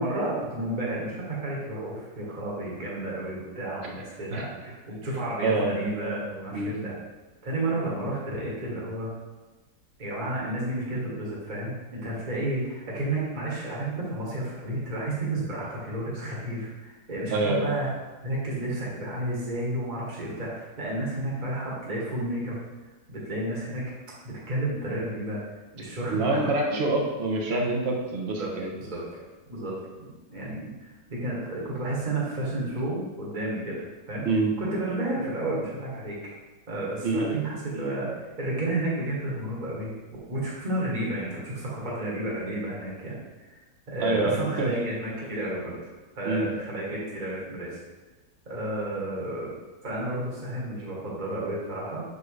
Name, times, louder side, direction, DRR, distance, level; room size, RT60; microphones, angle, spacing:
voice 1, 0.0-6.9 7.4-9.1 10.0-17.9 18.2-22.6 23.1-23.8 24.2-25.4 25.7-26.4 26.7-26.8 28.4-28.5 28.8-34.2 34.6-36.1 36.7-39.9 40.3-43.2 43.5-43.6 43.9-45.8 46.1-47.8 48.4-49.5 49.8-52.0, right 1 dB, 30° right, -5 dB, 1.4 m, -31 dB
voice 2, 5.4-5.8 6.5-6.8 17.3-17.7 26.1-28.7 34.2-34.5 37.0-37.4 44.0-44.7 46.2-46.5, right 2 dB, 45° right, 1 dB, 1.0 m, -26 dB
6.4 x 4.7 x 3.2 m, 1.2 s
omnidirectional pair, 1.9 m